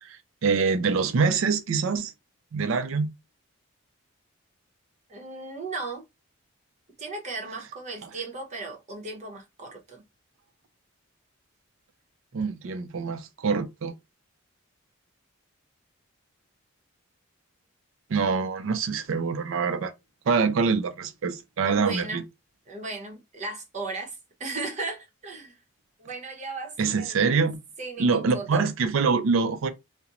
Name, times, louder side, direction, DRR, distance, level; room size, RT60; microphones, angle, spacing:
voice 1, 0.0-2.1 2.5-3.1 12.3-13.9 18.1-19.9 20.3-22.2 26.8-27.6 28.0-29.7, right 5 dB, 65° right, 0.4 m, -25 dB
voice 2, 5.1-6.0 7.0-10.0 21.6-22.2 22.7-25.6 26.0-27.2 27.8-28.7, right 3 dB, 35° right, 0.8 m, -36 dB
2.4 x 2.1 x 2.9 m
head